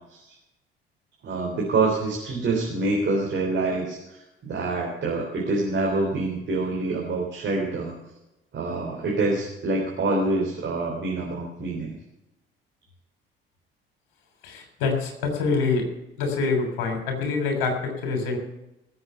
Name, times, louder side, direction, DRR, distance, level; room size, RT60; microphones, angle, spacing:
voice 1, 1.2-7.9 8.5-12.0, right 3 dB, 40° right, -2 dB, 3.7 m, -26 dB
voice 2, 14.4-15.9 16.2-18.4, left 4 dB, 60° left, 4 dB, 3.4 m, -25 dB
19.0 x 7.7 x 5.7 m, 0.93 s
figure-of-eight pair, 50°, 29 cm